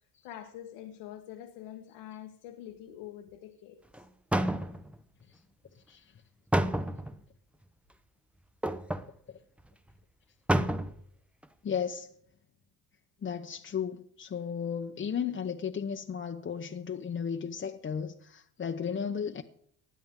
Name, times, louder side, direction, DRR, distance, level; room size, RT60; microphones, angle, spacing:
voice 1, 0.2-4.0, left 11 dB, 85° left, 1.5 m, -45 dB
sound 1, 3.9-4.0 4.3-5.0 6.5-7.2 8.6-9.1 9.6-9.7 9.9-10.0 10.5-11.0 11.4-11.5, right 1 dB, 5° right, 0.7 m, -29 dB
voice 2, 5.7-6.1 9.3-9.4 11.6-12.1 13.2-19.4, left 7 dB, 30° left, 0.8 m, -34 dB
19.5 x 11.5 x 3.7 m
cardioid pair, 95°, 41 cm